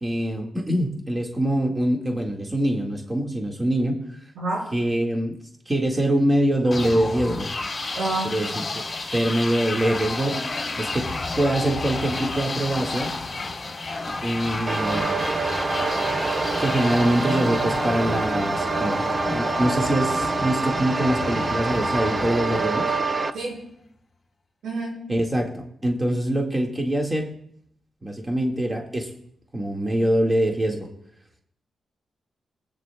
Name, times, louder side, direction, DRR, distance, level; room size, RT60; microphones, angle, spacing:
voice 1, 0.0-4.0 4.7-5.4 5.7-7.5 8.2-8.5 9.1-13.2 14.2-15.4 16.6-19.0 19.3-22.9 25.1-27.4 28.0-29.1 29.5-30.9, right 1 dB, 20° right, 1 dB, 1.7 m, -24 dB
voice 2, 4.4-4.7 7.9-8.3 23.3-23.6 24.6-25.0, right 2 dB, 85° right, -2 dB, 5.2 m, -28 dB
sound 1, 6.7-23.4, left 3 dB, 30° left, 3.4 m, -31 dB
sound 2, 14.7-23.3, right 3 dB, 40° right, 0.6 m, -26 dB
23.5 x 8.8 x 2.2 m, 0.71 s
cardioid pair, 60°, 0 cm